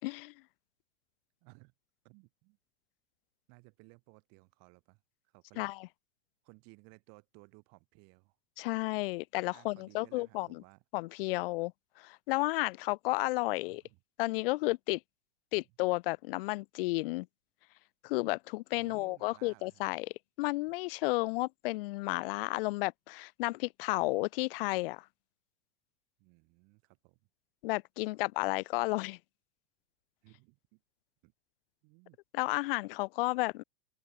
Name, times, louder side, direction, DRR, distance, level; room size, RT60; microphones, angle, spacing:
voice 1, 0.0-0.3 5.6-5.8 8.6-10.6 10.9-11.7 12.0-13.8 14.2-15.0 15.5-17.3 18.0-20.1 20.4-25.0 27.6-29.2 32.3-33.6, left 22 dB, 60° left, 0.6 m, -32 dB
voice 2, 1.4-1.7 2.0-2.6 3.5-5.0 5.3-5.7 6.4-8.4 9.5-10.8 13.7-14.0 15.6-15.7 18.8-19.8 26.2-27.2 30.2-30.8 31.2-31.3 31.8-32.2, right 33 dB, 50° right, 6.1 m, -59 dB
open air
hypercardioid pair, 125°, 33 cm